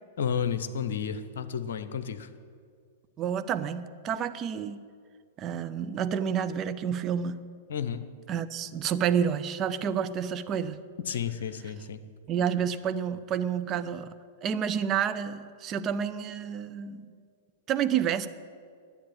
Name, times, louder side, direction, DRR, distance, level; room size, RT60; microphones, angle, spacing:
voice 1, 0.2-2.3 7.7-8.0 11.1-12.0, left 7 dB, 60° left, 11 dB, 0.8 m, -31 dB
voice 2, 3.2-4.8 5.4-7.4 8.3-10.8 12.3-14.1 14.4-17.1 17.7-18.3, right 8 dB, 30° right, 11 dB, 0.6 m, -29 dB
10.5 x 8.6 x 8.9 m, 2.2 s
figure-of-eight pair, 100°, 0 cm